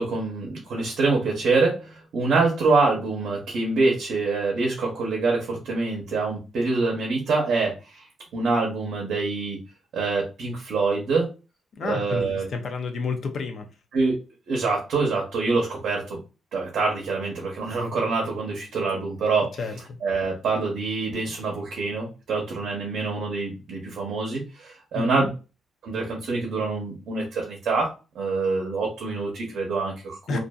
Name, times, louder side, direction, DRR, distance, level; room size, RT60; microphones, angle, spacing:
voice 1, 0.0-8.0 8.3-9.6 9.9-11.3 11.8-12.4 13.9-14.2 14.5-16.2 16.5-19.5 20.0-25.3 25.8-30.4, right 3 dB, 60° right, 0.7 m, -25 dB
voice 2, 11.8-13.7 19.6-19.7 24.9-25.3 30.3-30.4, left 4 dB, 45° left, 0.4 m, -30 dB
2.5 x 2.5 x 2.2 m
wide cardioid pair, 175°, 0 cm